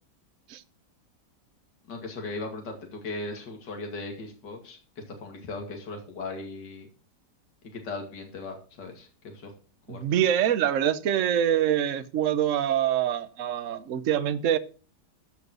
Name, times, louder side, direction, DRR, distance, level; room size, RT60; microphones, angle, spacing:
voice 1, 1.9-6.9 7.7-9.5 9.9-10.0, left 3 dB, 70° left, 2.9 m, -38 dB
voice 2, 9.9-14.6, right 10 dB, 55° right, 1.1 m, -25 dB
14.5 x 5.3 x 6.2 m
omnidirectional pair, 1.9 m